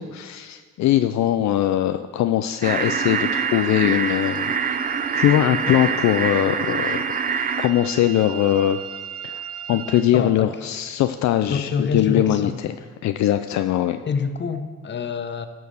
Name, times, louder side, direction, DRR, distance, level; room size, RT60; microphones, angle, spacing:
voice 1, 0.0-4.6 5.1-7.1 7.6-8.8 9.2-9.4 9.7-12.5 13.0-14.0, left 12 dB, 65° left, 9 dB, 0.4 m, -21 dB
sound 1, 2.6-7.7, right 6 dB, 30° right, 0.5 m, -25 dB
sound 2, 2.6-10.0, right 10 dB, 80° right, 1.1 m, -36 dB
voice 2, 5.6-6.0 9.7-9.8 10.1-10.6 11.5-12.6 14.1-15.5, left 5 dB, 35° left, 9 dB, 0.8 m, -27 dB
12.0 x 4.7 x 6.3 m, 1.5 s
cardioid pair, 90°, 30 cm